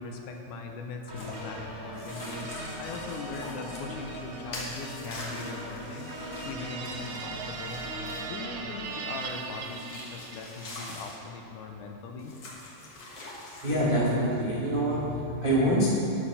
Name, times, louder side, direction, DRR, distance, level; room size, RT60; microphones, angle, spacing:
voice 1, 0.0-6.1 6.4-7.8 8.3-12.4, left 4 dB, 80° left, 3 dB, 2.2 m, -40 dB
sound 1, 1.1-9.1, equal, 10° right, 1.6 m, -40 dB
sound 2, 1.2-1.4 1.9-3.9 4.5-8.4 9.1-11.2 12.2-13.9, left 2 dB, 50° left, 1.4 m, -44 dB
sound 3, 6.1-10.8, right 6 dB, 85° right, 2.1 m, -40 dB
voice 2, 13.6-15.9, right 1 dB, 55° right, -8 dB, 0.5 m, -25 dB
9.6 x 6.5 x 5.8 m, 2.9 s
omnidirectional pair, 3.8 m